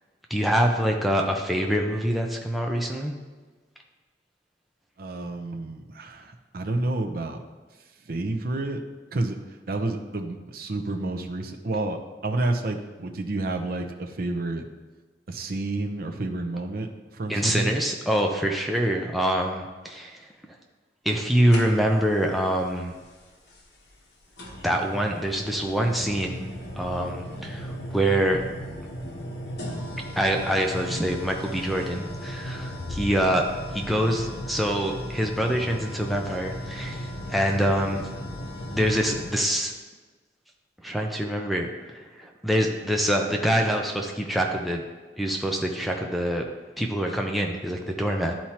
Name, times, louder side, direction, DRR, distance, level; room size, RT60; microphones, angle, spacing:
voice 1, 0.3-3.1 17.3-20.3 21.0-22.9 24.6-26.5 26.8-28.4 30.2-33.4 33.7-38.0 38.7-39.7 40.8-44.8 45.2-46.4 46.8-48.3, right 1 dB, ahead, 0 dB, 0.5 m, -25 dB
voice 2, 5.0-7.4 8.1-8.8 9.1-14.6 15.3-17.7 33.2-33.3, right 2 dB, 55° right, 4 dB, 0.6 m, -30 dB
sound 1, 21.5-22.1 23.5-23.6 24.4-39.4, equal, 75° left, 1.1 m, -36 dB
11.5 x 4.4 x 2.9 m, 1.3 s
head